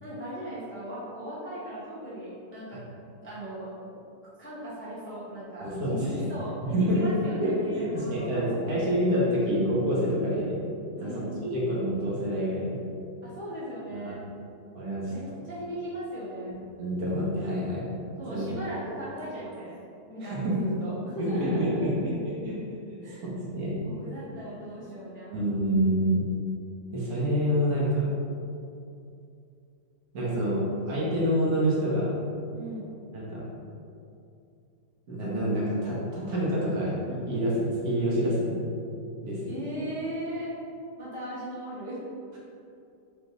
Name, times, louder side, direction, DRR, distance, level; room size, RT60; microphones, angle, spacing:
voice 1, 0.0-2.8 3.2-3.7 4.4-8.9 11.0-11.4 13.2-14.2 15.1-16.5 18.2-19.8 20.1-22.1 23.0-23.2 23.8-25.4 32.5-32.9 39.5-40.5 41.0-42.0, equal, 15° left, -9 dB, 0.5 m, -37 dB
voice 2, 5.6-6.3 6.6-7.1 7.4-10.7 11.0-12.8 13.9-14.2 14.7-15.1 16.8-17.9 18.3-18.5 20.2-20.6 21.2-23.8 25.3-26.2 26.9-28.1 30.1-32.2 33.1-33.5 35.1-38.7 39.2-39.6, equal, 60° right, -7 dB, 1.5 m, -27 dB
3.9 x 3.4 x 4.0 m, 2.6 s
omnidirectional pair, 2.0 m